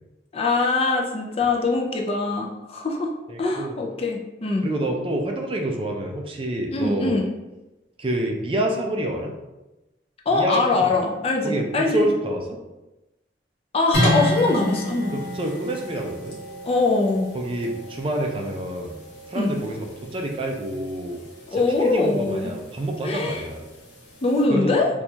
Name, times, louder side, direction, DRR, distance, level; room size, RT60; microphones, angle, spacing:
voice 1, 0.3-3.1 3.4-4.6 6.7-7.3 10.3-12.1 13.7-15.1 16.6-17.3 19.3-19.5 21.5-22.5 23.0-23.4 24.2-24.9, left 3 dB, 35° left, 0 dB, 0.4 m, -22 dB
voice 2, 3.3-3.8 4.6-7.2 8.0-9.3 10.3-11.0 11.4-12.6 15.1-16.4 17.3-18.9 19.3-19.9 20.1-21.2 21.5-23.6 24.5-24.7, right 1 dB, 30° right, 1 dB, 0.4 m, -27 dB
sound 1, 13.9-24.4, equal, 80° left, 1.1 m, -31 dB
4.3 x 2.3 x 2.8 m, 1.0 s
head